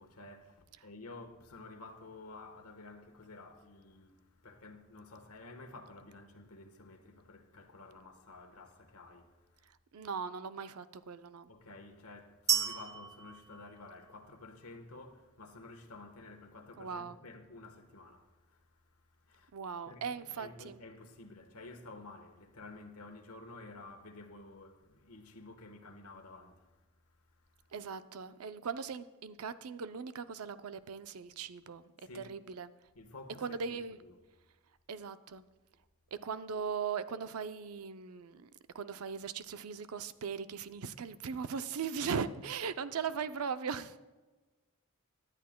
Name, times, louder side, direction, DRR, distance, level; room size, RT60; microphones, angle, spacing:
voice 1, 0.0-9.7 11.5-19.5 19.9-27.7 32.0-32.3 32.9-34.2, left 2 dB, 90° left, 1.2 m, -52 dB
voice 2, 9.7-11.5 16.8-17.2 19.5-20.8 27.7-32.7 33.4-34.0 34.9-35.4 36.2-38.5 38.7-44.0, right 6 dB, 80° right, 0.5 m, -39 dB
sound 1, 12.5-14.4, right 8 dB, 15° right, 0.5 m, -34 dB
17.5 x 10.5 x 2.2 m
head